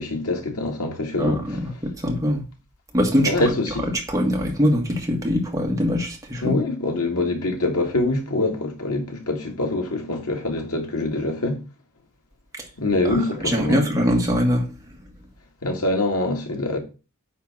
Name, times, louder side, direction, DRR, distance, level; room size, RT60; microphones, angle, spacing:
voice 1, 0.0-1.4 3.2-3.8 6.4-11.6 12.8-13.8 15.6-16.8, left 2 dB, 90° left, 2.0 m, -24 dB
voice 2, 1.2-1.7 2.0-2.4 2.9-3.5 4.1-6.5 12.6-12.7 13.1-14.7, equal, 15° right, 1.6 m, -22 dB
9.4 x 3.5 x 6.0 m
head